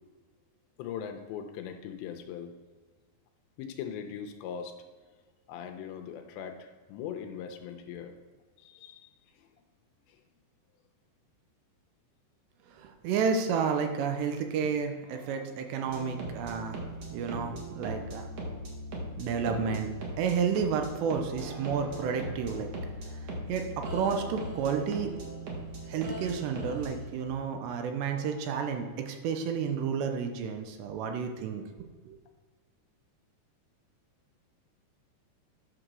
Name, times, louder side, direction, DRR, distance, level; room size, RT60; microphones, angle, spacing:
voice 1, 0.8-2.5 3.6-4.7 5.5-8.1 8.6-9.1, left 8 dB, 80° left, 5 dB, 2.9 m, -40 dB
voice 2, 12.7-16.8 17.1-18.3 19.2-22.7 23.5-25.1 25.9-31.6 32.0-32.2, right 6 dB, 80° right, 5 dB, 2.8 m, -31 dB
sound 1, 15.8-27.1, right 1 dB, 50° right, 2.2 m, -39 dB
9.9 x 5.1 x 6.1 m, 1.5 s
omnidirectional pair, 5.2 m